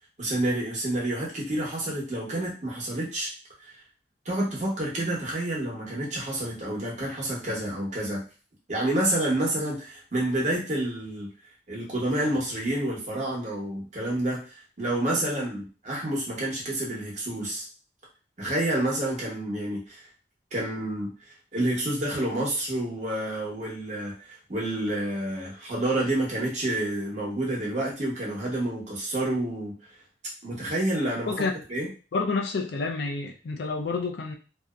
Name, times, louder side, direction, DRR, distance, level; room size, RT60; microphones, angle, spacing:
voice 1, 0.2-3.3 3.6-3.7 4.2-8.2 8.7-11.3 11.7-14.4 14.8-17.6 18.4-20.0 20.5-21.1 21.5-24.1 24.5-29.7 30.4-31.3 31.7-31.9, right 1 dB, 45° right, -4 dB, 0.9 m, -28 dB
voice 2, 32.1-34.4, left 4 dB, 65° left, 3 dB, 0.4 m, -29 dB
2.6 x 2.0 x 2.3 m, 0.35 s
head